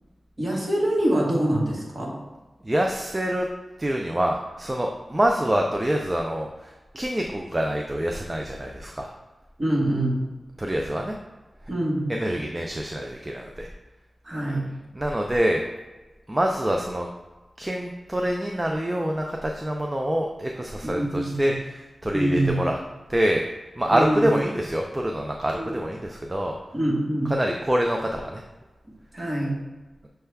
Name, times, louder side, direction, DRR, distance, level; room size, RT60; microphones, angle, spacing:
voice 1, 0.4-2.2 9.6-10.2 11.7-12.1 14.2-14.7 20.8-21.6 22.1-22.6 23.9-24.3 25.5-25.7 26.7-27.3 29.1-29.6, right 1 dB, 35° right, -4 dB, 1.3 m, -25 dB
voice 2, 2.6-3.5 3.8-9.1 10.6-11.1 12.1-13.7 15.0-15.6 16.3-17.1 17.6-21.5 22.0-22.8 23.1-23.5 23.8-26.6 27.3-28.4, right 1 dB, 20° right, 1 dB, 0.3 m, -26 dB
6.5 x 2.3 x 3.3 m, 1.2 s
wide cardioid pair, 100°, 0 cm